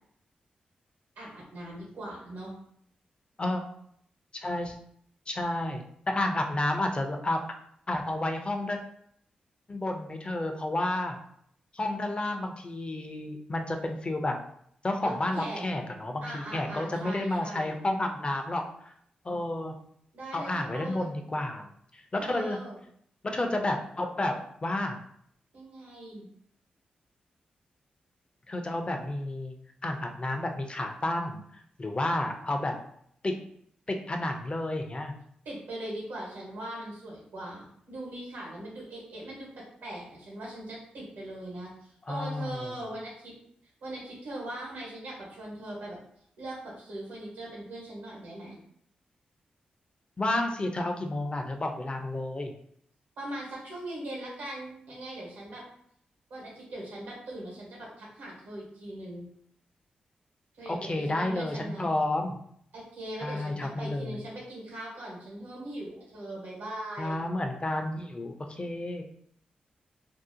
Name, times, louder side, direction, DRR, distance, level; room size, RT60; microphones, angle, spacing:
voice 1, 1.2-2.5 15.0-15.7 16.2-17.8 20.1-21.1 22.2-22.8 25.5-26.3 35.4-43.3 43.8-46.0 46.4-48.6 53.2-55.6 56.3-59.3 60.6-61.9 62.7-67.2, right 1 dB, 85° right, -4 dB, 1.1 m, -40 dB
voice 2, 4.3-4.8 5.3-7.4 7.9-8.8 9.7-11.2 11.7-14.4 14.8-18.6 19.2-19.7 20.3-21.7 21.9-22.6 23.2-25.0 28.5-29.5 29.8-31.4 31.8-32.7 33.2-33.3 33.9-35.1 42.1-42.7 50.2-52.5 60.7-62.4 63.2-64.2 67.0-69.0, left 1 dB, 35° left, 4 dB, 0.5 m, -31 dB
2.6 x 2.0 x 2.7 m, 0.68 s
supercardioid pair, 40°, 3 cm